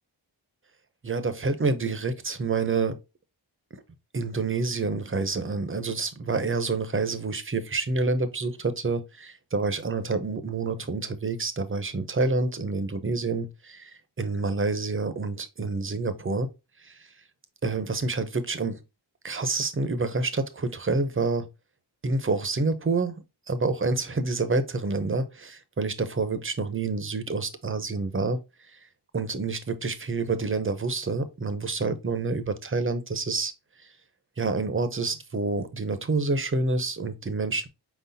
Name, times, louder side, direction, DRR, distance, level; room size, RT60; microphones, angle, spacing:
voice 1, 1.0-3.0 3.7-3.8 4.1-16.5 16.8-17.0 17.6-18.8 19.2-21.5 22.0-23.2 23.5-28.4 29.1-33.5 34.4-37.7, right 3 dB, 25° right, 0.7 m, -28 dB
4.8 x 3.9 x 2.7 m
wide cardioid pair, 85°, 46 cm